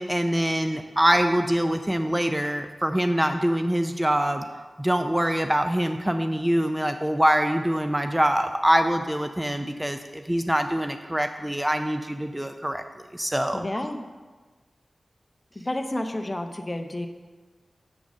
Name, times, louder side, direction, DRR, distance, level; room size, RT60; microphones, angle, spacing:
voice 1, 0.0-4.5 4.8-12.8 13.1-13.6, equal, 15° right, 7 dB, 0.4 m, -24 dB
voice 2, 13.5-14.0 15.5-17.1, left 1 dB, 30° left, 6 dB, 0.7 m, -30 dB
7.2 x 3.9 x 6.2 m, 1.3 s
cardioid pair, 50°, 0 cm